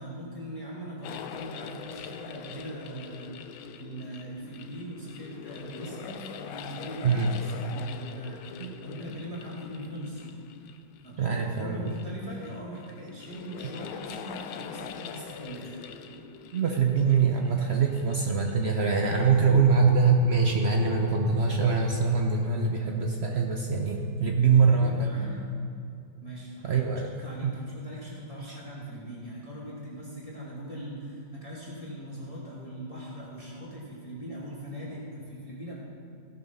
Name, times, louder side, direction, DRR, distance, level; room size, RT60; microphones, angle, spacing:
voice 1, 0.0-10.4 11.0-15.8 24.6-25.4 26.2-26.8 27.2-35.7, equal, 15° left, -7 dB, 2.4 m, -40 dB
sound 1, 1.0-19.6, left 8 dB, 80° left, 1.4 m, -44 dB
voice 2, 11.2-11.9 16.5-25.1 26.6-27.1 27.4-27.5 28.5-28.6, right 5 dB, 80° right, 1 dB, 0.5 m, -24 dB
16.0 x 6.9 x 5.4 m, 2.5 s
omnidirectional pair, 2.2 m